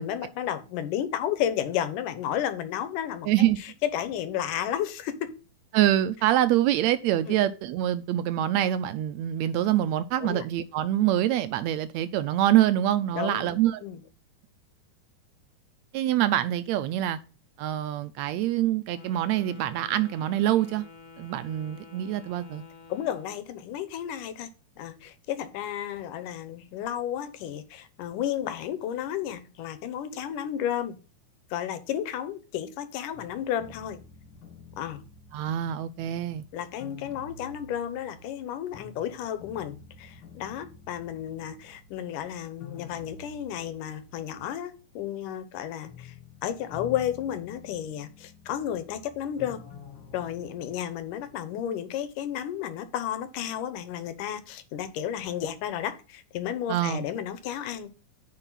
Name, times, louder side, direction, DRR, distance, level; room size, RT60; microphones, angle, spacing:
voice 1, 0.0-3.3 3.6-5.3 7.3-7.4 10.2-10.5 13.1-14.0 22.9-24.5 24.8-31.0 31.5-34.0 34.8-35.0 36.5-46.1 46.4-49.6 50.1-58.0, left 10 dB, 90° left, 2.6 m, -32 dB
voice 2, 3.3-3.6 5.7-13.8 15.9-17.2 17.6-20.8 21.2-22.6 35.3-36.4 56.7-57.1, right 12 dB, 85° right, 1.6 m, -25 dB
Wind instrument woodwind instrument, 18.9-23.5, left 4 dB, 40° left, 1.1 m, -49 dB
sound 1, 33.1-45.1 45.5-51.9, left 5 dB, 65° left, 1.1 m, -49 dB
9.8 x 5.4 x 3.9 m
omnidirectional pair, 3.6 m